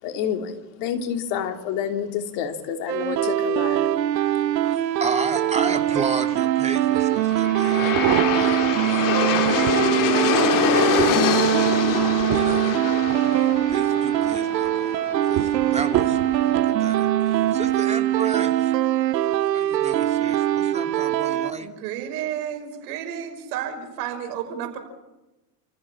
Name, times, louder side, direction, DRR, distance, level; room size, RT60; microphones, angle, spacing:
voice 1, 0.0-3.8, left 8 dB, 60° left, 5 dB, 3.3 m, -28 dB
sound 1, 2.9-21.5, right 13 dB, 80° right, 1.3 m, -22 dB
voice 2, 4.6-8.1 8.4-11.4 12.2-16.2 16.6-18.7 19.5-21.7, right 4 dB, 15° right, 4 dB, 2.8 m, -34 dB
Aircraft, 6.7-17.8, left 10 dB, 40° left, 2.0 m, -26 dB
sound 2, 7.0-7.1 7.7-8.7 9.2-9.9 10.4-13.8 14.2-14.7 15.4-16.7 17.5-17.8 18.1-18.2, right 12 dB, 45° right, 2.2 m, -29 dB
voice 3, 21.6-24.8, right 9 dB, 65° right, 6 dB, 5.6 m, -31 dB
29.5 x 15.5 x 7.4 m, 1.0 s
hypercardioid pair, 95°, 49 cm